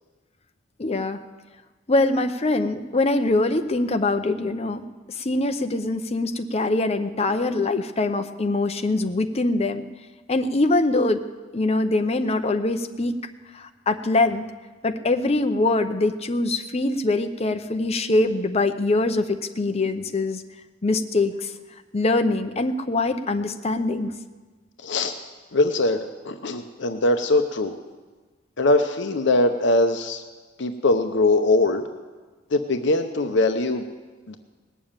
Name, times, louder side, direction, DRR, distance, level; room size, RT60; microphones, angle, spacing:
voice 1, 0.8-1.2 1.9-4.8 5.2-9.9 10.3-11.2 11.5-13.1 13.5-14.4 14.8-20.4 20.8-21.5 21.9-24.1, left 2 dB, 35° left, 8 dB, 0.7 m, -23 dB
voice 2, 24.8-25.1 25.5-27.7 28.6-30.2 30.6-31.8 32.5-33.8 34.3-34.4, left 2 dB, 65° left, 7 dB, 0.7 m, -21 dB
19.0 x 7.1 x 8.8 m, 1.4 s
head